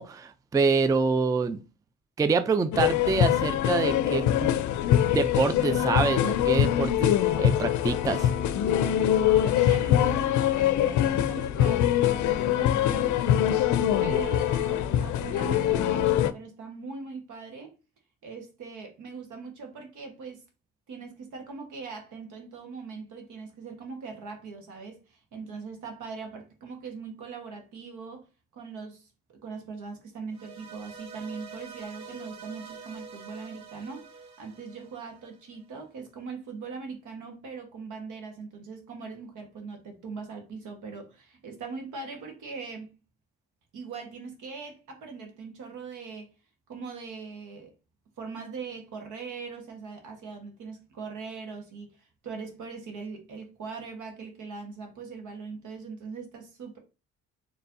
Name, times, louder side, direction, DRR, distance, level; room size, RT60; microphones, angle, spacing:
voice 1, 0.0-1.6 2.2-4.5 5.1-8.3, right 4 dB, 10° right, 0.3 m, -26 dB
sound 1, 2.7-16.3, left 11 dB, 70° left, 0.5 m, -23 dB
voice 2, 9.3-13.3 14.0-17.7 18.2-20.4 20.9-28.3 28.5-29.1 29.4-43.0 43.7-46.3 46.7-47.7 48.2-56.8, right 5 dB, 80° right, 1.3 m, -41 dB
sound 2, 30.3-35.6, right 5 dB, 60° right, 1.0 m, -46 dB
4.3 x 3.1 x 2.6 m
cardioid pair, 90°, 30 cm